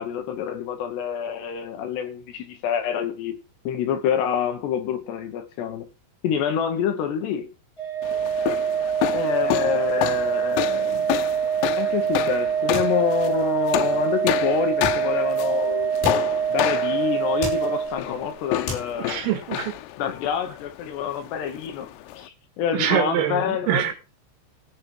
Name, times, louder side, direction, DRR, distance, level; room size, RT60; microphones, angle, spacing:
voice 1, 0.0-3.4 3.6-5.9 6.2-7.5 9.1-11.1 11.8-16.0 16.5-19.2 20.0-23.9, left 8 dB, 70° left, 2.9 m, -27 dB
Organ, 7.8-18.4, right 8 dB, 5° left, 5.8 m, -25 dB
sound 1, 8.0-22.3, left 15 dB, 90° left, 3.4 m, -30 dB
sound 2, 11.9-12.2 12.5-13.7 14.8-15.7 16.0-16.9 17.2-18.2 18.7-19.4, left 3 dB, 55° left, 9.0 m, -36 dB
voice 2, 19.1-19.7 22.7-23.9, right 10 dB, 85° right, 4.7 m, -24 dB
17.0 x 7.8 x 4.8 m
omnidirectional pair, 5.8 m